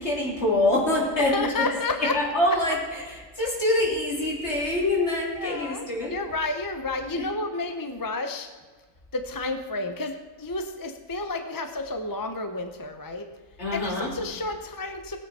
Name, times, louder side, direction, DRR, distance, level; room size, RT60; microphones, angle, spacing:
voice 1, 0.0-1.7 2.0-6.2 7.2-7.3 13.6-14.1, left 1 dB, 55° left, -3 dB, 3.4 m, -25 dB
voice 2, 1.2-2.2 5.3-8.5 9.1-13.3 13.7-15.2, left 3 dB, 20° left, 6 dB, 0.7 m, -31 dB
19.5 x 8.5 x 4.2 m, 1.4 s
omnidirectional pair, 1.4 m